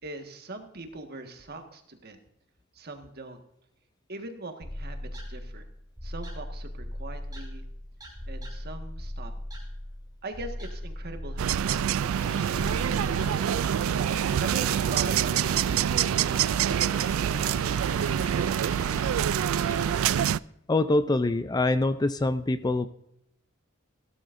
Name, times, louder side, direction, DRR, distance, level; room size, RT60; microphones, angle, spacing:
voice 1, 0.0-2.2 2.7-3.4 4.1-5.7 6.0-7.6 8.3-9.4 10.2-13.7 14.4-18.3, right 2 dB, 50° right, 5 dB, 1.6 m, -42 dB
sound 1, 4.6-13.3, left 1 dB, 20° right, 3.0 m, -38 dB
sound 2, 11.4-20.4, right 9 dB, 80° right, 0.3 m, -26 dB
sound 3, 12.1-20.3, left 2 dB, 35° left, 1.0 m, -41 dB
voice 2, 20.7-22.9, left 2 dB, 20° left, 12 dB, 0.4 m, -24 dB
16.0 x 12.5 x 2.6 m, 0.75 s
head